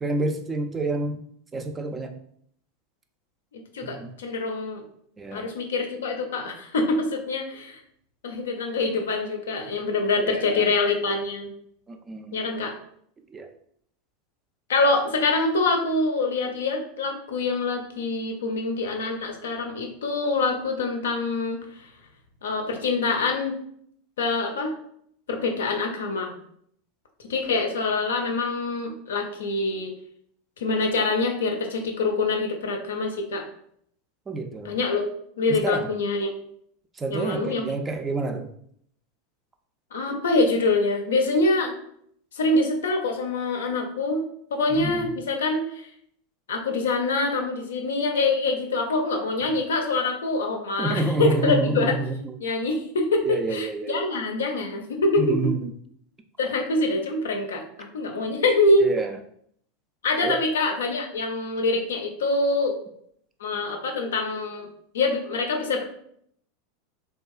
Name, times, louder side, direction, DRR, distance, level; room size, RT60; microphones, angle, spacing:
voice 1, 0.0-1.2 1.5-2.2 3.8-4.1 5.2-5.5 10.2-10.7 11.9-12.4 13.3-13.5 34.3-34.8 35.5-35.9 37.0-38.5 44.7-45.1 50.8-52.2 53.3-54.1 55.2-55.7 58.8-59.2 60.2-60.4, right 2 dB, 20° right, 6 dB, 0.3 m, -28 dB
voice 2, 3.5-4.8 5.3-7.8 8.2-11.5 12.3-12.7 14.7-21.9 22.4-23.6 24.2-24.7 25.3-26.4 27.3-30.0 30.6-33.4 34.6-35.0 35.4-36.3 37.1-37.7 39.9-41.7 42.3-44.2 44.5-45.9 46.5-51.9 52.4-55.5 56.4-58.9 60.0-62.8 63.4-64.7 64.9-65.8, left 3 dB, 80° left, 3 dB, 0.5 m, -25 dB
2.7 x 2.3 x 2.3 m, 0.67 s
hypercardioid pair, 90°, 0 cm